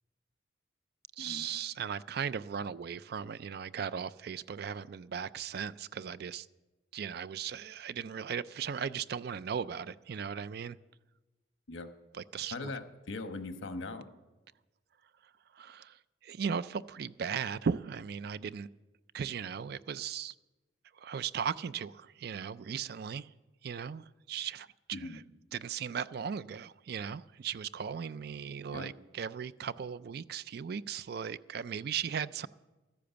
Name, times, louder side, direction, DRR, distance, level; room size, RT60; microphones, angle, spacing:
voice 1, 1.2-6.5 6.9-10.8 12.1-12.7 15.5-18.7 19.1-20.3 21.0-23.3 23.6-25.2 25.5-32.5, right 7 dB, 50° right, 0.3 m, -37 dB
voice 2, 12.5-14.0 24.9-25.2 28.7-28.9, left 3 dB, 85° left, 1.1 m, -40 dB
13.5 x 10.0 x 6.9 m
head